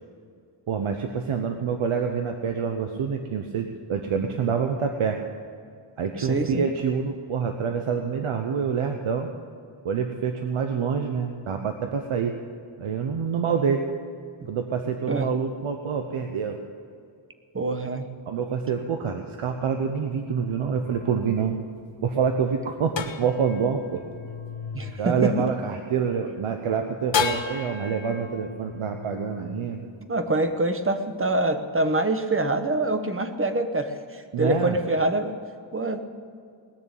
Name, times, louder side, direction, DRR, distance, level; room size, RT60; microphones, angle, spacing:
voice 1, 0.7-5.2 6.0-9.3 9.8-12.4 12.8-13.8 14.5-16.6 18.3-21.6 22.0-24.0 24.9-29.9 34.3-34.8, right 6 dB, 80° right, 5 dB, 1.0 m, -27 dB
voice 2, 6.2-6.6 15.1-15.3 17.5-18.0 24.7-25.5 30.1-35.4 35.7-36.1, right 2 dB, 25° right, 8 dB, 1.0 m, -25 dB
sound 1, 20.8-26.1 27.1-30.5, left 5 dB, 60° left, 1.2 m, -34 dB
19.5 x 6.9 x 8.9 m, 2.3 s
wide cardioid pair, 130°, 50 cm